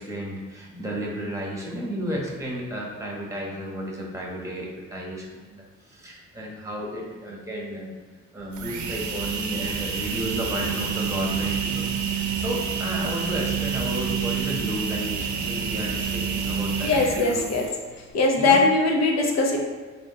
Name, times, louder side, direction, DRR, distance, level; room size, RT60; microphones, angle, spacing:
voice 1, 0.0-7.9 8.3-17.5 18.4-18.6, equal, 10° right, -2 dB, 1.0 m, -33 dB
sound 1, 8.4-17.9, right 6 dB, 70° right, 0.6 m, -28 dB
voice 2, 16.8-17.7 18.1-19.6, left 3 dB, 60° left, 1 dB, 0.8 m, -20 dB
4.2 x 3.4 x 2.8 m, 1.4 s
cardioid pair, 90°, 30 cm